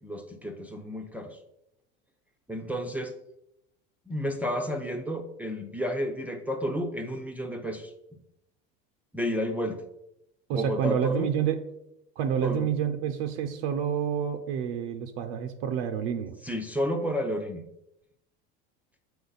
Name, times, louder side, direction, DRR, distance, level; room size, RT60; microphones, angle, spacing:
voice 1, 0.0-1.4 2.5-3.1 4.1-7.9 9.1-9.8 10.5-11.3 12.4-12.7 16.4-17.6, equal, 5° right, 2 dB, 0.6 m, -31 dB
voice 2, 10.5-11.6 12.2-16.4, right 8 dB, 80° right, 6 dB, 0.7 m, -28 dB
6.9 x 4.7 x 4.0 m, 0.82 s
supercardioid pair, 120°, 29 cm